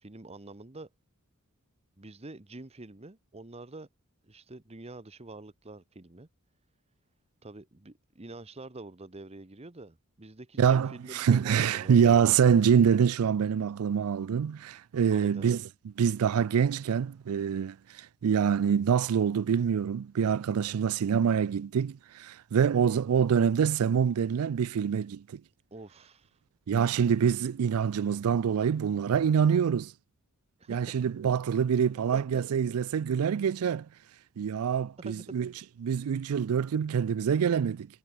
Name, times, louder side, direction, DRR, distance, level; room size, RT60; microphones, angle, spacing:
voice 1, 0.0-0.9 2.0-3.9 4.3-6.3 7.4-12.0 15.1-15.6 22.7-23.0 25.7-26.3 30.6-30.8 32.1-32.4 35.0-35.4 35.9-36.1, right 2 dB, 30° right, 1.1 m, -46 dB
voice 2, 10.6-15.6 16.0-25.4 26.7-29.9 30.7-33.9 34.4-35.5 35.8-37.9, right 7 dB, 85° right, 0.4 m, -25 dB
head